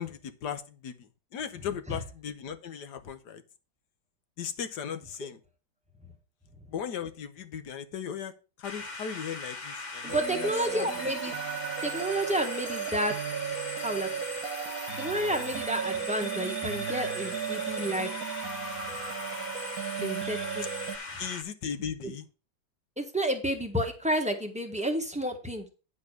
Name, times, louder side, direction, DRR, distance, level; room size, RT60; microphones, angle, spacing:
voice 1, 0.0-3.4 4.4-5.4 6.7-8.3 8.6-10.9 21.2-22.3, left 8 dB, 65° left, 9 dB, 1.4 m, -37 dB
sound 1, 8.6-21.4, left 3 dB, 35° left, 0.7 m, -40 dB
voice 2, 10.0-11.4 11.8-13.1 13.8-14.1 15.0-18.1 20.0-20.7 22.0-22.1 23.0-25.7, right 1 dB, 5° right, 4 dB, 1.0 m, -30 dB
sound 2, 10.1-21.0, right 8 dB, 50° right, 1.4 m, -35 dB
10.0 x 4.0 x 6.4 m, 0.33 s
omnidirectional pair, 2.1 m